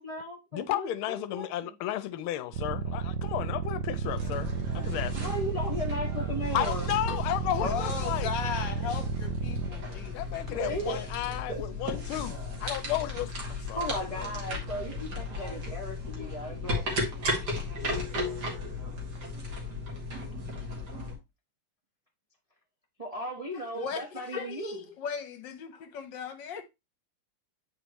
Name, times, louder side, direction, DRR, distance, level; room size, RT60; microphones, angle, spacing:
voice 1, 0.0-0.9 1.3-1.5 5.1-6.9 10.5-11.0 11.5-11.6 13.7-17.1 23.0-24.8, right 1 dB, 25° right, 0.7 m, -36 dB
voice 2, 0.5-4.5 4.7-5.3 6.5-8.3 10.1-13.9 14.2-14.6, left 13 dB, 85° left, 1.4 m, -33 dB
sound 1, 2.5-9.7, right 7 dB, 70° right, 1.2 m, -33 dB
sound 2, 4.1-21.1, left 2 dB, 50° right, 2.3 m, -35 dB
voice 3, 7.6-11.4 23.5-26.6, left 7 dB, 65° left, 1.5 m, -37 dB
8.3 x 4.8 x 3.0 m
omnidirectional pair, 2.3 m